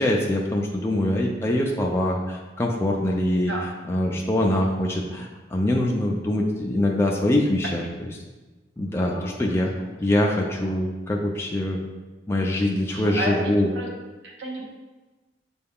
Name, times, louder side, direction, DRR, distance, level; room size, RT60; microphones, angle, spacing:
voice 1, 0.0-8.1 8.8-9.7 10.0-11.8 12.3-13.7, left 1 dB, 15° left, -1 dB, 0.3 m, -24 dB
voice 2, 12.9-13.9 14.2-14.7, right 1 dB, 65° right, -2 dB, 1.0 m, -32 dB
6.6 x 2.3 x 3.5 m, 1.2 s
head